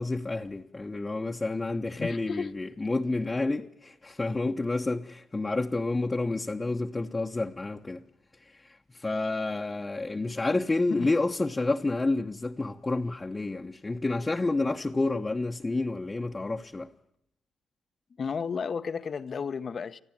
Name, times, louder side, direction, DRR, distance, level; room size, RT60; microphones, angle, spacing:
voice 1, 0.0-8.0 8.6-16.9, left 2 dB, 25° left, 1.1 m, -29 dB
voice 2, 2.0-2.5 10.9-11.2 18.2-20.0, left 6 dB, 50° left, 1.0 m, -33 dB
25.5 x 14.5 x 8.8 m
supercardioid pair, 60°, 0 cm